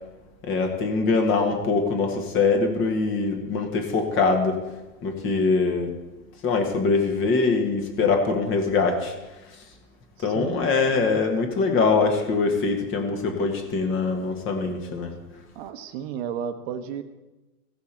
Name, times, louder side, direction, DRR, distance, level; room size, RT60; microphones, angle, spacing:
voice 1, 0.4-4.6 5.0-5.9 6.4-9.1 9.5-9.6 10.2-15.2, left 4 dB, 25° left, 4 dB, 1.5 m, -23 dB
voice 2, 10.3-11.2 15.5-17.0, right 8 dB, 40° right, 9 dB, 0.9 m, -33 dB
16.0 x 6.1 x 4.4 m, 1.1 s
hypercardioid pair, 140°, 45 cm